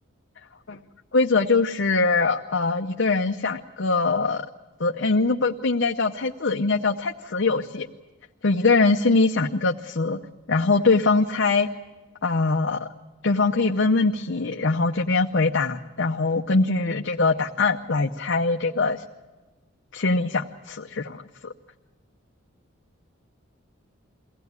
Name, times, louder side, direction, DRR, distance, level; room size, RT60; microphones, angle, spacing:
voice 1, 1.1-4.5 4.8-7.9 8.4-10.2 10.5-11.7 12.2-12.9 13.2-19.0 19.9-21.5, left 3 dB, 65° left, 3 dB, 0.7 m, -22 dB
23.0 x 17.0 x 9.6 m, 1.2 s
head